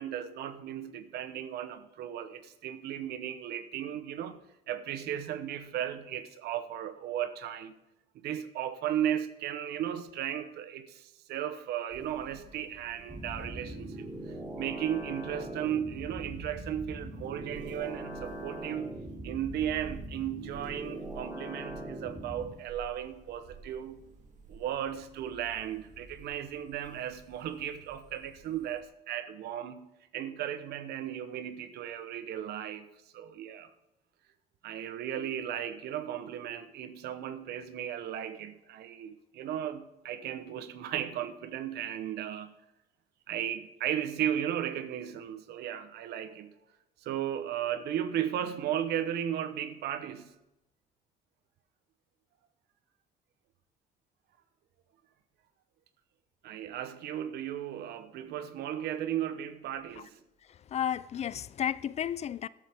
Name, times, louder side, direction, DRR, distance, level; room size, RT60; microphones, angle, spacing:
voice 1, 0.0-4.4 4.7-7.7 8.1-14.1 14.6-18.9 19.2-24.1 24.5-32.9 33.1-33.7 34.6-42.5 43.3-46.5 47.0-50.3 56.4-60.2, right 10 dB, 75° right, 1.0 m, -35 dB
sound 1, 11.9-28.8, right 4 dB, 45° right, 2.1 m, -53 dB
sound 2, 13.1-22.5, right 1 dB, 15° right, 3.5 m, -41 dB
voice 2, 60.4-62.5, left 9 dB, 40° left, 0.4 m, -33 dB
13.5 x 12.0 x 3.6 m
cardioid pair, 110°, 17 cm